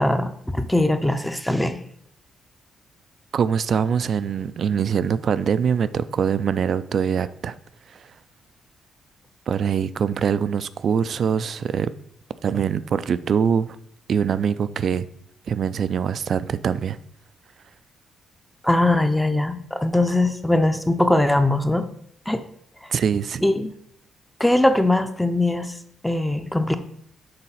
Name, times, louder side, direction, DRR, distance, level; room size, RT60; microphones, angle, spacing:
voice 1, 0.0-1.8 18.6-21.9 22.3-22.4 23.4-23.7 24.4-25.7 26.0-26.8, left 1 dB, 5° left, 0.5 m, -21 dB
voice 2, 3.3-7.6 7.9-8.0 9.5-11.9 12.4-13.8 14.1-15.1 15.5-17.0 22.9-23.4, right 7 dB, 50° right, 0.3 m, -23 dB
6.8 x 4.0 x 5.6 m
cardioid pair, 135°, 0 cm